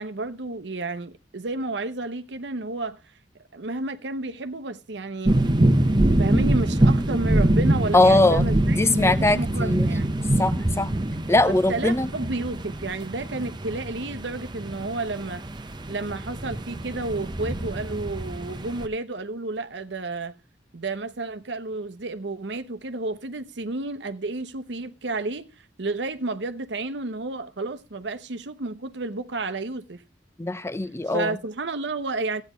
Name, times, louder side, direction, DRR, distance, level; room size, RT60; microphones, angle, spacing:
voice 1, 0.0-3.0 3.5-5.4 6.2-10.1 11.5-15.4 15.9-20.3 20.7-30.0 31.1-32.4, right 2 dB, 75° right, 0.9 m, -31 dB
sound 1, 5.2-18.9, right 1 dB, 25° right, 0.9 m, -24 dB
voice 2, 7.9-9.9 10.4-10.9 11.3-12.1 30.4-31.4, left 2 dB, 15° left, 0.7 m, -21 dB
15.0 x 9.5 x 3.1 m
head